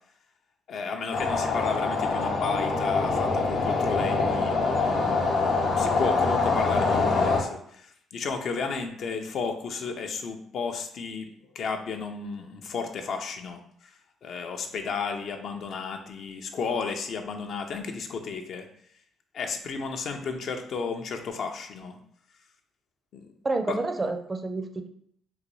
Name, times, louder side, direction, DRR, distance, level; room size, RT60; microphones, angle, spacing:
voice 1, 0.7-18.7 19.3-22.0 23.1-23.3 23.7-23.8, left 5 dB, 65° left, 5 dB, 0.4 m, -33 dB
sound 1, 1.1-7.4, left 3 dB, 85° left, 0.8 m, -25 dB
voice 2, 23.4-24.9, right 2 dB, 25° right, 6 dB, 0.4 m, -29 dB
3.8 x 2.2 x 3.0 m, 0.66 s
cardioid pair, 95°, 0 cm